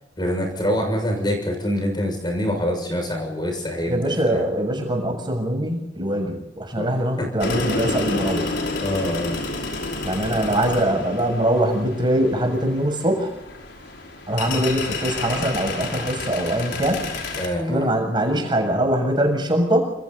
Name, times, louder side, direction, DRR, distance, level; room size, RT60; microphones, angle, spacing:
voice 1, 0.2-4.4 6.7-7.3 8.8-9.4 17.4-17.9, equal, 25° left, 3 dB, 6.7 m, -25 dB
voice 2, 3.9-8.6 10.0-13.3 14.3-17.1 17.7-19.8, right 1 dB, 25° right, 3 dB, 7.1 m, -22 dB
sound 1, 7.4-17.5, left 3 dB, 70° left, 5.4 m, -30 dB
28.5 x 28.0 x 4.2 m, 0.88 s
head